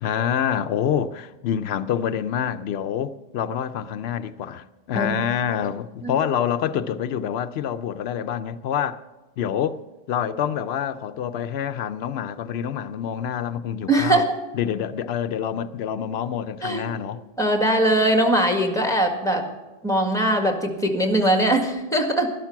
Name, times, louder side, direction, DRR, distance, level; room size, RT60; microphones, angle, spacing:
voice 1, 0.0-9.0 9.4-9.8 10.1-14.2 14.5-17.2, left 9 dB, 85° left, 0.8 m, -26 dB
voice 2, 13.9-14.4 16.6-16.9 17.4-19.4 19.8-22.3, right 1 dB, 5° left, 1.8 m, -21 dB
12.5 x 12.0 x 5.8 m
omnidirectional pair, 1.0 m